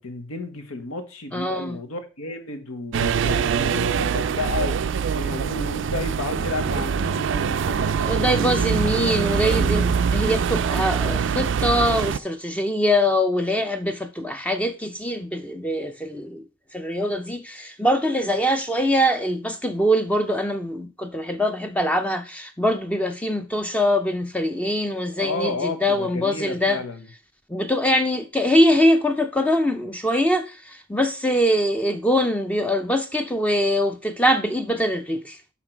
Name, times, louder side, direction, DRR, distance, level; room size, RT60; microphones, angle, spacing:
voice 1, 0.0-8.7 9.3-9.7 25.2-27.1, left 2 dB, 90° left, 1.3 m, -32 dB
voice 2, 1.3-1.8 8.0-16.4 16.7-26.8 27.5-35.4, equal, 5° left, 0.5 m, -23 dB
sound 1, 2.9-12.2, right 6 dB, 55° right, 0.3 m, -23 dB
5.8 x 5.8 x 4.5 m
head